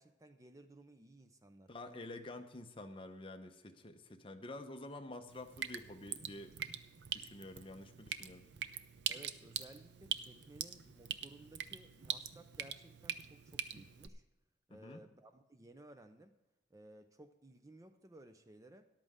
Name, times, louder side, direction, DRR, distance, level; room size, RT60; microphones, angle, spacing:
voice 1, 0.0-2.1 9.1-14.2 14.7-16.4 16.7-18.8, right 1 dB, 20° right, 9 dB, 0.5 m, -58 dB
voice 2, 1.7-6.8 7.1-8.5 14.7-15.0, left 2 dB, 30° left, 6 dB, 0.9 m, -49 dB
Drip, 5.3-14.1, right 9 dB, 70° right, 0.6 m, -43 dB
13.5 x 11.0 x 3.7 m, 1.0 s
head